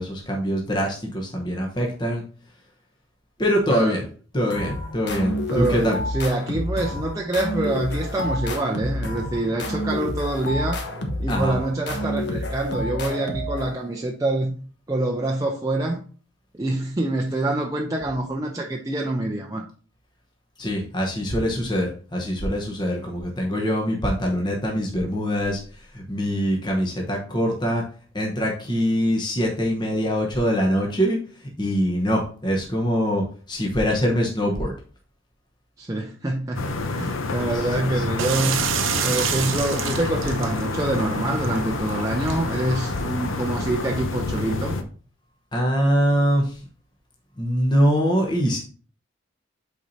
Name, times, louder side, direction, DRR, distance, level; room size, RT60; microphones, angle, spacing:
voice 1, 0.0-2.2 3.4-4.0 4.3-6.0 11.3-11.6 20.6-27.8 28.1-31.2 31.6-34.7 37.5-38.0 45.5-46.6 47.4-48.6, equal, 20° left, -1 dB, 1.0 m, -23 dB
voice 2, 3.7-4.0 5.5-10.8 11.2-14.6 14.9-16.0 16.5-19.7 35.8-38.7 39.0-44.8, right 2 dB, 15° right, 0 dB, 0.5 m, -26 dB
sound 1, 4.5-14.0, left 1 dB, 60° left, 1.1 m, -29 dB
sound 2, 36.5-44.8, left 3 dB, 75° left, 0.8 m, -28 dB
sound 3, 38.2-43.6, right 8 dB, 75° right, 0.7 m, -30 dB
8.2 x 4.2 x 2.7 m, 0.41 s
head